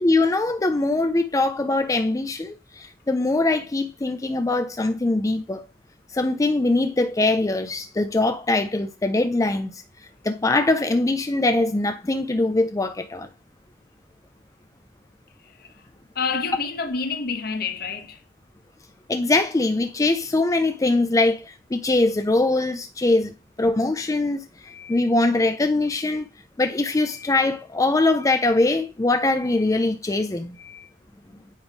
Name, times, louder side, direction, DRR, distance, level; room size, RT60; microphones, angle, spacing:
voice 1, 0.0-5.6 6.1-9.8 10.2-13.3 19.1-26.3 26.6-30.9, left 2 dB, 20° left, 0.4 m, -22 dB
voice 2, 16.1-18.2, left 5 dB, 60° left, 1.2 m, -28 dB
8.7 x 3.5 x 5.3 m
head